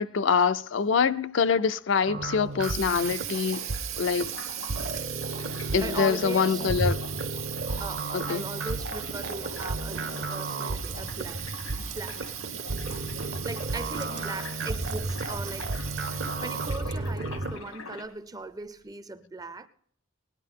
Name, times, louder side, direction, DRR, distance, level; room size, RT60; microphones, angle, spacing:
voice 1, 0.0-3.6 4.0-4.3 5.7-7.0 8.1-8.4, left 6 dB, 60° left, 0.4 m, -25 dB
sound 1, 1.5-1.8 3.0-18.1, left 2 dB, 85° left, 1.8 m, -44 dB
sound 2, 2.1-17.6, right 2 dB, 50° right, 0.7 m, -33 dB
Water tap faucet, 2.3-17.0, right 12 dB, 80° right, 1.1 m, -38 dB
voice 2, 5.8-6.7 7.8-12.3 13.4-15.7 16.4-19.7, right 2 dB, 15° right, 0.4 m, -39 dB
19.0 x 10.5 x 3.7 m
head